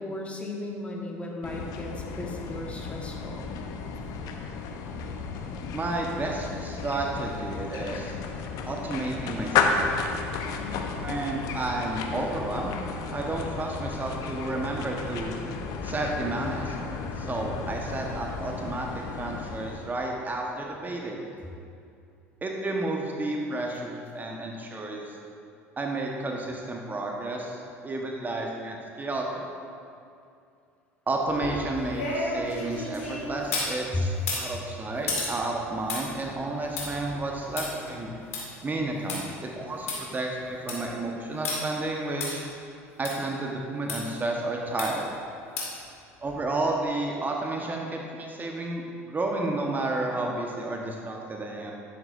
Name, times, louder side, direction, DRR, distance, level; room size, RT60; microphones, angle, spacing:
voice 1, 0.0-3.5 10.6-10.9 33.9-34.0, left 2 dB, 15° left, -1 dB, 1.4 m, -35 dB
sound 1, 1.4-20.1, left 5 dB, 55° left, 0.8 m, -33 dB
voice 2, 5.7-8.1 8.7-9.9 11.0-12.7 13.1-15.3 15.8-21.3 22.4-25.2 25.8-29.4 31.1-38.1 38.6-42.4 43.0-45.1 46.2-51.7, right 2 dB, 25° right, 0 dB, 1.2 m, -31 dB
sound 2, 31.3-33.7 34.2-39.2 39.6-39.7 39.9-40.0 40.4-40.9 41.4-41.6 42.2-42.3 43.0-43.1 43.9-44.0 44.8-45.1 45.6-45.8 46.3-46.4, left 3 dB, 80° left, 2.0 m, -33 dB
10.5 x 9.3 x 2.6 m, 2.5 s
hypercardioid pair, 70°, 7 cm